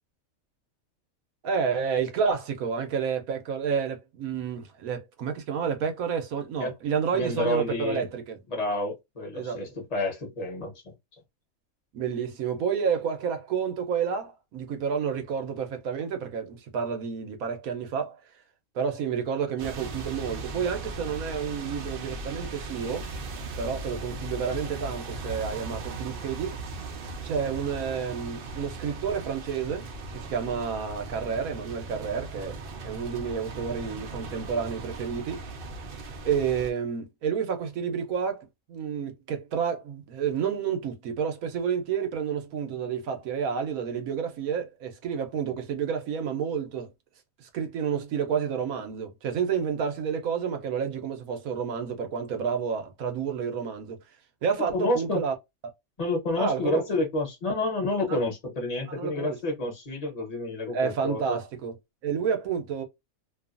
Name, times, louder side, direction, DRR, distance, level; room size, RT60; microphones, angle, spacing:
voice 1, 1.4-8.4 9.3-9.6 11.9-18.2 18.7-23.1 23.6-26.9 27.2-29.9 30.1-32.6 32.8-35.4 36.2-46.9 47.4-54.0 54.4-55.3 56.4-56.8 58.1-58.2 58.9-59.4 60.7-61.8 62.0-62.8, right 6 dB, 80° right, 1.2 m, -30 dB
voice 2, 7.1-8.1 8.5-10.9 54.7-55.2 56.0-61.4, left 1 dB, 30° left, 1.0 m, -29 dB
sound 1, 19.6-36.7, right 3 dB, 55° right, 0.7 m, -38 dB
2.8 x 2.4 x 2.4 m
omnidirectional pair, 1.5 m